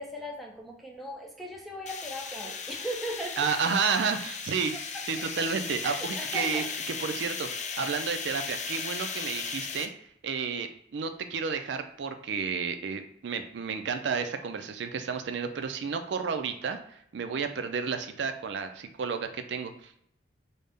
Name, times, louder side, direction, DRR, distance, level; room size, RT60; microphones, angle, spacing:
voice 1, 0.0-3.5 4.9-5.0 5.8-6.7, equal, ahead, -1 dB, 0.7 m, -38 dB
sound 1, 1.9-9.9, left 5 dB, 40° left, 0.4 m, -36 dB
voice 2, 3.4-4.7 5.0-9.9 10.2-20.0, right 5 dB, 65° right, 7 dB, 0.4 m, -31 dB
5.3 x 2.1 x 3.5 m, 0.72 s
head